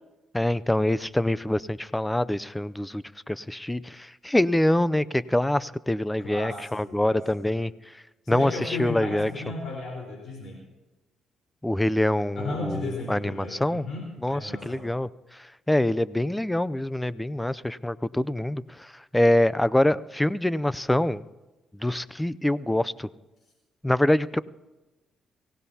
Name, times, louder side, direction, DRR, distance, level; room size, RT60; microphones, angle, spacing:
voice 1, 0.3-9.3 11.6-13.8 14.2-21.2 21.8-23.1 23.8-24.4, left 1 dB, 10° left, 18 dB, 0.4 m, -25 dB
voice 2, 6.2-7.5 8.2-10.6 12.4-14.9, left 2 dB, 65° left, -1 dB, 4.0 m, -35 dB
23.5 x 17.5 x 2.8 m, 1.1 s
cardioid pair, 90°, 0 cm